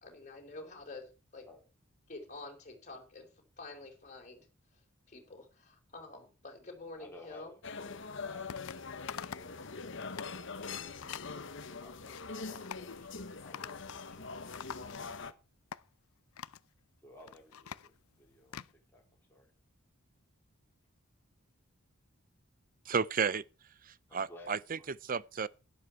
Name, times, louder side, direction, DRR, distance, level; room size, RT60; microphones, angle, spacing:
voice 1, 0.0-1.4 2.1-3.3 3.6-4.5 4.7-4.8 5.1-7.5, left 2 dB, 35° left, 4.1 m, -48 dB
voice 2, 6.9-15.2 17.0-18.6 18.9-19.0 19.3-19.5 24.1-24.9 25.1-25.2, left 1 dB, 10° left, 4.1 m, -57 dB
sound 1, 7.6-15.3, left 4 dB, 60° left, 1.1 m, -43 dB
sound 2, 8.5-8.8 9.1-9.6 9.9-10.4 11.0-11.3 11.8-12.2 12.6-12.9 13.5-14.1 14.3-15.3 15.7-15.8 16.4-16.7 17.1-18.7, left 8 dB, 85° left, 0.6 m, -45 dB
voice 3, 22.9-23.4 23.8-24.8 25.0-25.5, right 6 dB, 40° right, 0.5 m, -32 dB
12.0 x 11.0 x 4.6 m
head